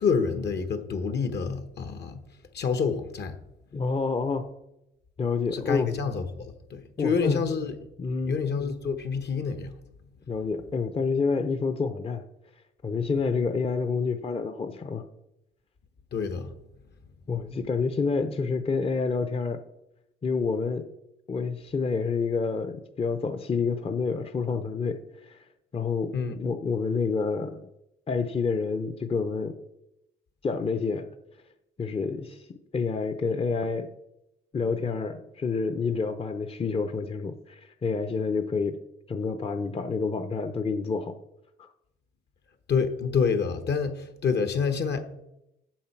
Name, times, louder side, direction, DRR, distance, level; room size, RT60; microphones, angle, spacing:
voice 1, 0.0-2.2 2.5-3.4 5.5-7.8 8.2-9.8 16.1-16.5 26.1-26.4 42.7-45.0, left 5 dB, 60° left, 1.2 m, -28 dB
voice 2, 3.7-4.5 5.2-5.9 7.0-7.4 8.0-8.4 10.3-12.2 12.8-15.1 17.3-19.6 20.2-20.9 21.3-25.4 25.7-27.7 28.1-29.5 30.4-31.1 31.8-32.5 32.7-33.9 34.5-38.8 39.1-41.1 41.6-41.7, left 4 dB, 30° left, 0.7 m, -28 dB
7.3 x 7.3 x 5.9 m
cardioid pair, 90°, 20 cm